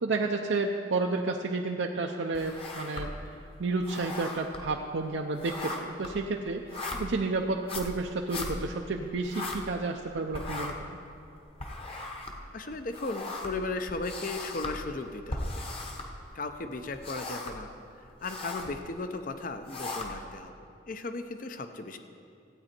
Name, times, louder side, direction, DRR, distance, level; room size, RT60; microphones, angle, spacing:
voice 1, 0.0-3.1 3.6-11.0, right 3 dB, 75° right, 2 dB, 0.6 m, -31 dB
sound 1, 2.3-3.4 3.7-10.1 10.3-16.5 16.9-17.7 18.1-18.8 19.4-20.4, left 2 dB, 30° left, 1.0 m, -38 dB
voice 2, 12.5-15.7 16.3-17.7 18.0-20.5 20.9-22.0, left 3 dB, 45° left, 8 dB, 0.7 m, -36 dB
15.0 x 8.9 x 4.4 m, 2.6 s
head